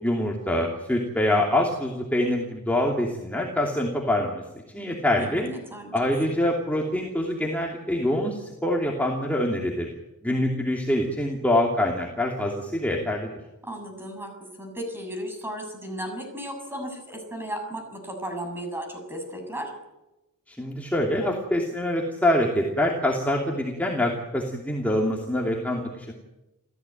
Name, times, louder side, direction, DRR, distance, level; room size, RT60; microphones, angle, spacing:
voice 1, 0.0-4.4 4.7-5.4 5.9-9.9 10.2-13.3 20.5-26.1, left 1 dB, 5° left, -1 dB, 2.8 m, -25 dB
voice 2, 5.2-5.9 13.6-14.3 14.6-19.7, right 1 dB, 10° right, 4 dB, 6.9 m, -35 dB
28.5 x 15.5 x 9.1 m, 0.99 s
head